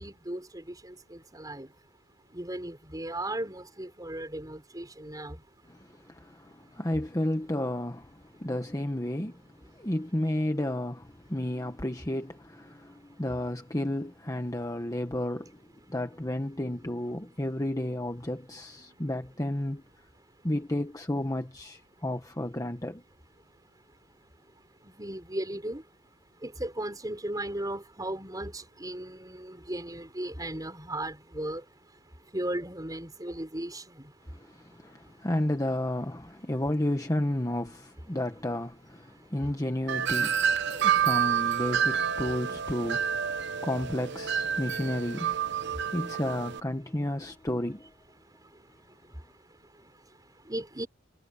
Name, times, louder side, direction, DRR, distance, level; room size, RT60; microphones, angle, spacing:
voice 1, 0.0-1.7 2.3-5.4 25.0-25.8 26.4-31.6 32.3-34.1 50.5-50.9, right 1 dB, 15° right, 5.7 m, -36 dB
voice 2, 5.7-15.6 15.9-19.8 20.4-23.0 34.3-45.4 45.9-47.9, left 1 dB, 15° left, 1.2 m, -32 dB
Wind chime, 39.9-46.6, right 8 dB, 55° right, 0.8 m, -28 dB
head